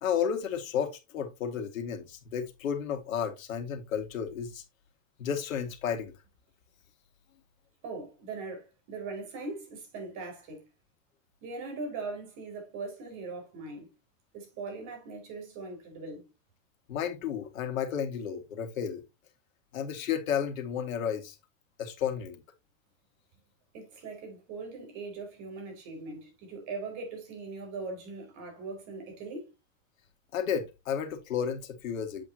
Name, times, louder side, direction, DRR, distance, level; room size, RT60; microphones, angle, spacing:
voice 1, 0.0-4.6 5.2-6.1 16.9-19.0 19.7-21.4 21.8-22.4 30.3-32.2, left 8 dB, 80° left, 1.8 m, -32 dB
voice 2, 7.8-10.7 11.4-13.9 14.3-16.3 23.7-29.5, right 3 dB, 50° right, 4.7 m, -40 dB
7.8 x 7.6 x 2.7 m
hypercardioid pair, 110°, 40 cm